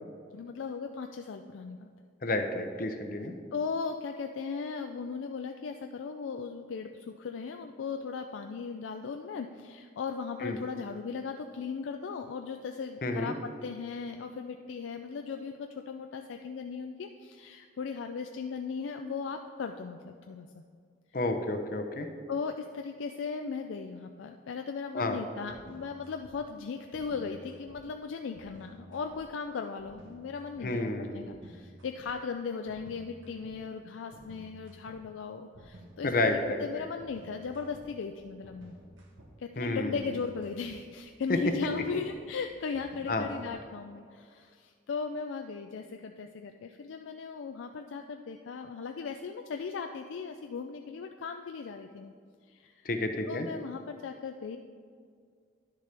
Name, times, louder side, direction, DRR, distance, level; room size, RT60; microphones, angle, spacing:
voice 1, 0.3-1.9 3.5-20.6 22.3-38.7 39.4-52.1 52.5-52.9 53.3-54.6, left 5 dB, 85° left, 5 dB, 0.4 m, -37 dB
voice 2, 2.2-3.4 10.4-10.6 13.0-13.3 21.1-22.1 24.9-25.2 30.6-31.2 36.0-36.8 39.6-39.9 43.1-43.3 52.8-53.5, left 2 dB, 45° left, 6 dB, 0.7 m, -30 dB
sound 1, 25.5-26.3 26.9-27.8 28.4-29.2 29.8-30.7 31.2-32.1 32.7-33.6 34.1-35.0 35.5-43.9, right 1 dB, 85° right, 1.2 m, -53 dB
11.0 x 6.6 x 3.4 m, 2.1 s
head